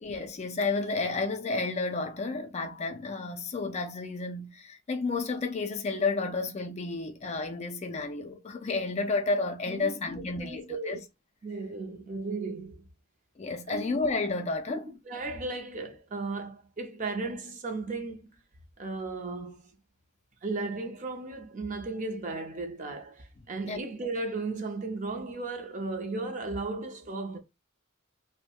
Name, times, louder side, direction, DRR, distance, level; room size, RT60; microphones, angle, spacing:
voice 1, 0.0-11.0 13.4-14.9 23.7-23.8, left 3 dB, 30° left, 0.4 m, -31 dB
voice 2, 9.7-10.0 10.4-11.0 11.4-12.8 13.7-14.0 14.7-18.3 18.8-19.7 20.4-27.4, right 3 dB, 35° right, 0.5 m, -35 dB
2.6 x 2.1 x 2.8 m
head